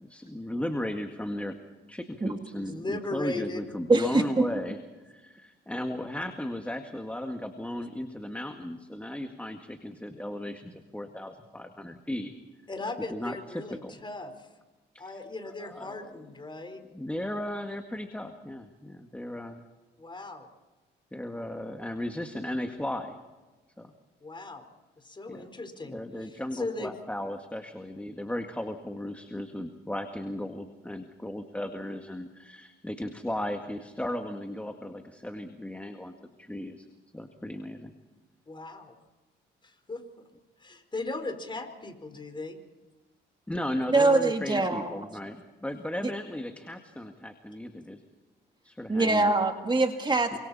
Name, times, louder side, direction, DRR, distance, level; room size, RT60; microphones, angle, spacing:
voice 1, 0.0-1.5 1.9-4.8 5.1-12.3 13.1-13.4 13.8-13.9 14.9-15.1 15.6-16.1 16.9-19.6 21.1-23.2 23.8-23.9 25.3-25.5 25.8-36.1 36.4-36.9 37.1-37.9 43.5-48.0 48.6-49.3 50.3-50.4, left 1 dB, 5° left, 5 dB, 2.0 m, -36 dB
voice 2, 2.5-3.7 12.7-14.5 15.0-16.8 20.0-20.5 24.2-24.6 25.0-26.9 38.5-38.9 39.6-40.2 40.6-42.6, left 2 dB, 25° left, 6 dB, 4.6 m, -38 dB
voice 3, 3.9-4.5 43.9-44.9 48.9-50.4, right 2 dB, 25° right, 4 dB, 2.1 m, -23 dB
29.0 x 25.5 x 4.3 m, 1.2 s
cardioid pair, 90°, 20 cm